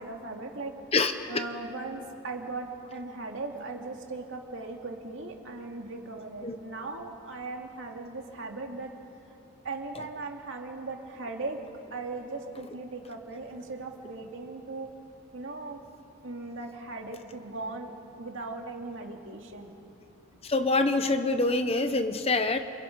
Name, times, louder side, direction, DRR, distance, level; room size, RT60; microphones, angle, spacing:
voice 1, 0.0-0.7 1.3-8.9 9.6-11.6 11.9-14.9 15.3-15.8 16.2-19.8, right 3 dB, 60° right, 2 dB, 2.6 m, -38 dB
voice 2, 20.4-22.6, left 3 dB, 25° left, 8 dB, 0.9 m, -25 dB
29.5 x 28.5 x 5.4 m, 2.8 s
head